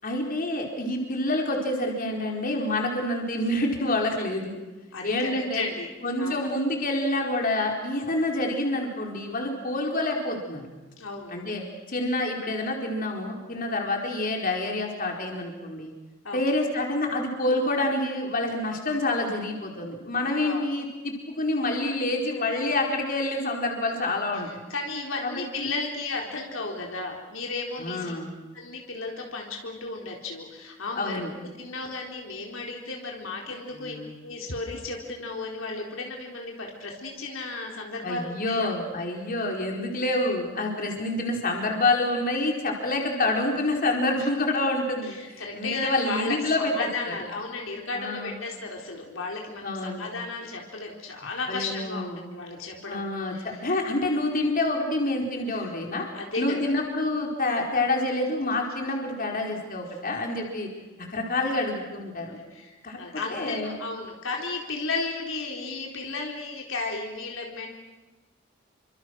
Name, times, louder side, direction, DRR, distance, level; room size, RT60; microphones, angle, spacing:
voice 1, 0.0-4.6 5.0-5.6 6.0-10.6 11.3-11.6 11.9-15.9 16.3-24.5 25.2-25.7 27.8-28.3 31.0-31.3 33.8-34.1 38.0-47.1 47.9-48.3 49.6-50.1 51.5-52.2 52.9-56.0 56.4-60.7 61.0-62.4 62.8-63.0 63.3-63.7, left 2 dB, 45° left, 1 dB, 4.4 m, -27 dB
voice 2, 4.9-5.9 6.2-6.5 11.0-11.4 16.2-16.4 20.4-20.7 24.4-28.1 28.5-33.9 34.2-38.7 44.2-44.3 45.0-53.6 56.1-56.7 61.4-61.6 62.5-67.7, left 3 dB, 70° left, 0 dB, 4.1 m, -34 dB
28.5 x 25.5 x 6.5 m, 1.2 s
head